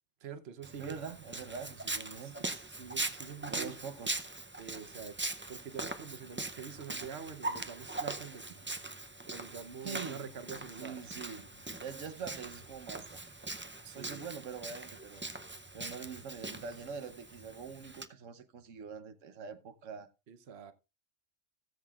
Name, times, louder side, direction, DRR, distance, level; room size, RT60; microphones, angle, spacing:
voice 1, 0.2-1.0 2.2-3.8 4.6-5.1 5.5-8.4 8.9-11.0 13.8-14.2 20.3-20.7, right 6 dB, 60° right, 1.1 m, -46 dB
Walk footsteps, 0.6-18.1, right 2 dB, 20° right, 0.3 m, -41 dB
voice 2, 0.8-2.7 3.5-4.3 9.8-10.3 10.8-13.3 13.9-15.3 15.7-20.1, right 6 dB, 85° right, 1.3 m, -44 dB
sound 1, 6.2-15.0, left 2 dB, 70° left, 2.5 m, -67 dB
18.0 x 7.6 x 2.4 m
omnidirectional pair, 1.3 m